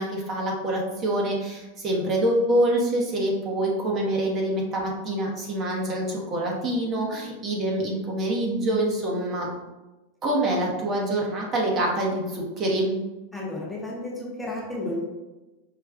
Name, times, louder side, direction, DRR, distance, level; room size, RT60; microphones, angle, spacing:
voice 1, 0.0-9.5 10.2-12.9, right 1 dB, 35° right, -2 dB, 0.8 m, -25 dB
voice 2, 13.3-15.0, left 2 dB, 5° left, -4 dB, 0.8 m, -32 dB
4.9 x 2.2 x 2.4 m, 1.1 s
hypercardioid pair, 120°, 0 cm